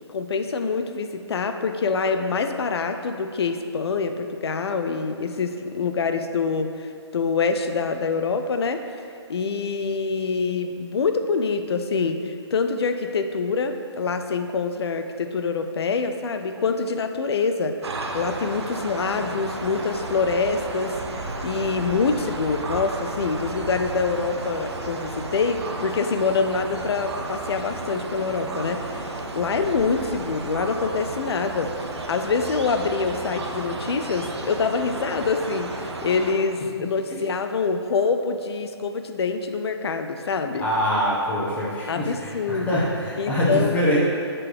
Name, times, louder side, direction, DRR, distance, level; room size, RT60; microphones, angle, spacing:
voice 1, 0.1-8.9 9.3-31.8 32.1-40.7 41.9-42.8 43.2-43.8, left 4 dB, 60° left, 7 dB, 0.5 m, -25 dB
sound 1, 17.8-36.3, right 2 dB, 70° right, 0.8 m, -33 dB
voice 2, 40.6-42.3 42.7-44.0, equal, 10° left, -7 dB, 1.2 m, -23 dB
7.3 x 4.1 x 3.4 m, 2.4 s
figure-of-eight pair, 135°, 15 cm